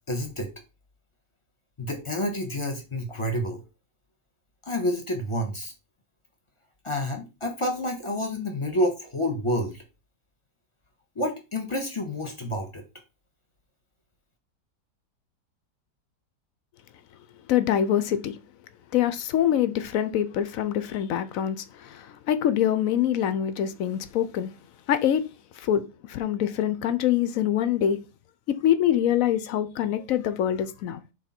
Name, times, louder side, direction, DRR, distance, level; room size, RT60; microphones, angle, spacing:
voice 1, 0.1-0.5 1.8-3.6 4.6-5.7 6.8-9.8 11.2-12.8, left 1 dB, 20° left, 1.1 m, -29 dB
voice 2, 17.5-18.4 18.9-24.5 24.9-25.2 25.6-28.0 28.5-31.0, left 10 dB, 70° left, 0.8 m, -25 dB
7.2 x 3.3 x 4.3 m
omnidirectional pair, 1.8 m